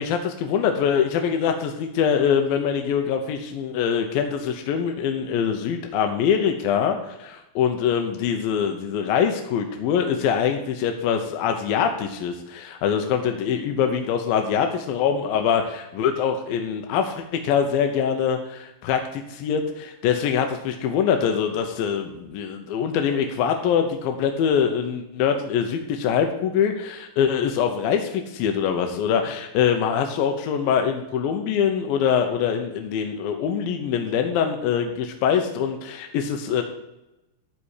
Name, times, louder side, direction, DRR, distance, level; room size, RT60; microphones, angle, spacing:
voice 1, 0.0-36.6, left 7 dB, 75° left, 5 dB, 2.6 m, -24 dB
12.5 x 4.3 x 8.3 m, 0.91 s
omnidirectional pair, 4.4 m